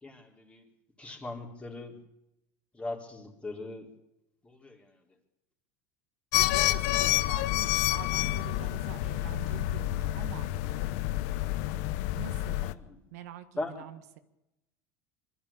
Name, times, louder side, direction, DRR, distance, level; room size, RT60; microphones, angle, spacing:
voice 1, 0.0-0.6 1.0-2.0 2.7-3.9 4.4-4.9 12.6-13.0 13.6-13.7, left 2 dB, 15° left, 2 dB, 4.1 m, -39 dB
sound 1, 6.3-12.7, left 16 dB, 70° left, 0.9 m, -29 dB
voice 2, 6.3-10.5 12.2-12.7 13.1-14.2, right 12 dB, 85° right, 10 dB, 1.8 m, -45 dB
23.0 x 13.0 x 8.6 m, 0.88 s
supercardioid pair, 125°, 8 cm